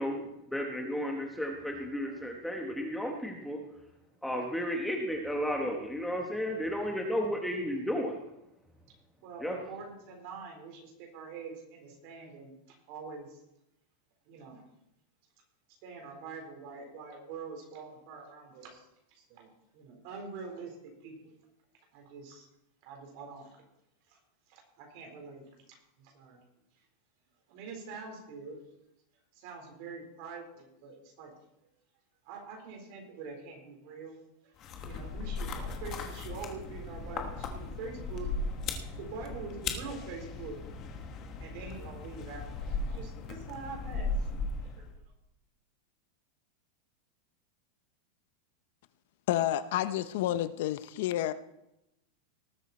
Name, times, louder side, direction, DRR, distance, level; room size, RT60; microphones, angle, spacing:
voice 1, 0.0-3.6 4.2-8.2 9.4-9.6, equal, ahead, 1 dB, 1.0 m, -33 dB
voice 2, 9.2-13.4 14.3-14.6 15.8-19.5 19.7-21.3 21.9-22.5 22.8-23.6 24.1-24.2 24.5-25.5 26.0-26.4 27.5-28.6 29.3-31.3 32.2-34.2 34.4-38.3 38.9-40.6 41.4-44.3 44.6-44.9, right 4 dB, 45° right, 2 dB, 4.0 m, -45 dB
sound 1, 34.6-45.0, left 3 dB, 25° left, 1.3 m, -37 dB
voice 3, 49.3-51.3, left 13 dB, 55° left, 13 dB, 0.6 m, -30 dB
19.0 x 8.8 x 4.3 m, 0.85 s
supercardioid pair, 175°, 0 cm